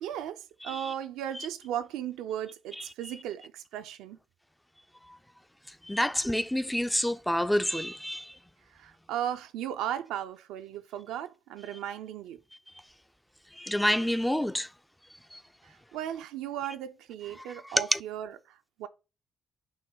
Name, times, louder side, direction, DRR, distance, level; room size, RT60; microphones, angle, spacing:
voice 1, 0.0-4.2 8.7-12.4 15.6-18.9, right 10 dB, 75° right, 0.4 m, -36 dB
voice 2, 5.8-8.3 13.6-14.7 15.3-15.4 17.9-18.0, equal, 5° left, 0.4 m, -28 dB
6.1 x 2.1 x 3.6 m
hypercardioid pair, 40°, 0 cm